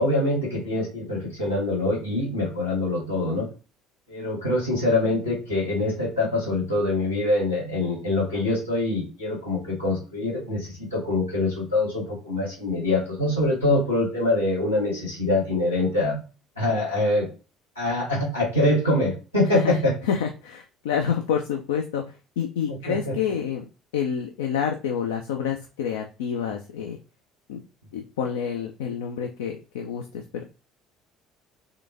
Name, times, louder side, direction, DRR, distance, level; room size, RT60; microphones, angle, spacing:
voice 1, 0.0-3.5 4.1-16.2 16.6-17.3 17.7-19.9 22.7-23.2, left 2 dB, 85° left, -5 dB, 1.5 m, -24 dB
voice 2, 19.4-27.0 27.5-27.6 27.9-30.4, left 7 dB, 70° left, 4 dB, 0.4 m, -28 dB
3.8 x 3.3 x 3.3 m, 0.33 s
figure-of-eight pair, 55°, 0 cm